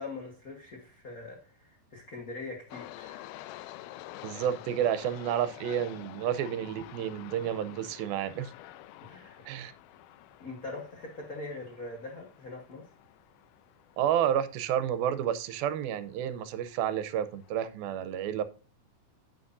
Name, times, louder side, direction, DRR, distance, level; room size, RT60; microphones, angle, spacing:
voice 1, 0.0-3.3 9.0-9.4 10.4-12.9, left 3 dB, 70° left, 0.8 m, -42 dB
sound 1, 2.7-17.7, left 15 dB, 90° left, 2.5 m, -49 dB
voice 2, 4.2-8.5 9.5-9.7 14.0-18.4, right 10 dB, 85° right, 2.5 m, -30 dB
9.6 x 8.6 x 2.6 m
omnidirectional pair, 4.2 m